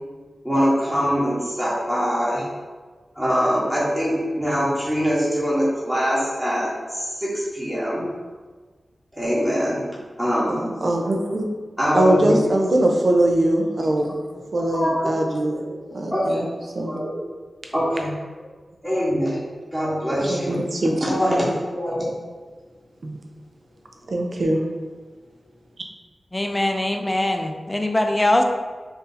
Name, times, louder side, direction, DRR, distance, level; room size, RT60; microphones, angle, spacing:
voice 1, 0.4-2.4 3.1-8.1 9.1-9.9 10.2-10.7 11.8-12.3 14.6-15.1 15.5-16.5 16.9-17.1 17.7-18.1 18.8-19.4 19.7-20.6 21.0-22.1, equal, 5° right, -9 dB, 1.2 m, -23 dB
voice 2, 10.5-11.5 11.9-14.2 14.5-15.7 15.9-16.5 16.7-17.0 20.3-20.9 23.0-23.2 24.1-24.6, right 1 dB, 65° right, 1 dB, 0.5 m, -21 dB
voice 3, 26.3-28.4, left 1 dB, 20° left, 4 dB, 0.3 m, -22 dB
2.7 x 2.6 x 3.8 m, 1.4 s
cardioid pair, 55°, 0 cm